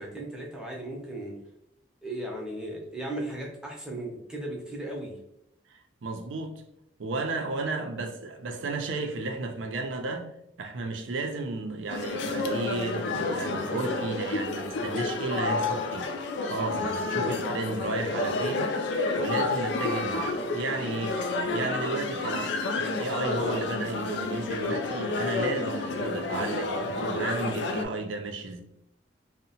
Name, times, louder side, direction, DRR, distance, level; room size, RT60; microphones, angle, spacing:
voice 1, 0.0-1.4 2.0-5.2, right 1 dB, 5° right, 0.5 m, -36 dB
voice 2, 5.7-6.6 7.0-10.3 10.6-16.1 16.5-18.7 19.2-21.2 21.5-28.6, right 3 dB, 90° right, 0.4 m, -33 dB
sound 1, 11.9-27.8, left 3 dB, 65° left, 0.3 m, -30 dB
2.7 x 2.1 x 2.7 m
head